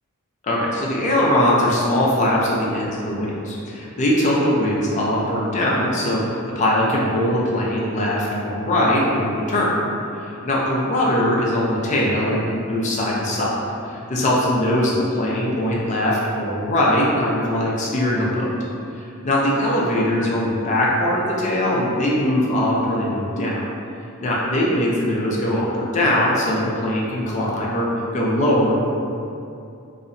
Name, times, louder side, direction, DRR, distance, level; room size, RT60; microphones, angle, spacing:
voice 1, 0.4-9.7 10.2-13.6 13.9-18.5 19.0-23.6 24.2-27.9 28.1-28.9, left 1 dB, 35° left, -4 dB, 0.4 m, -21 dB
2.7 x 2.1 x 2.5 m, 2.6 s
head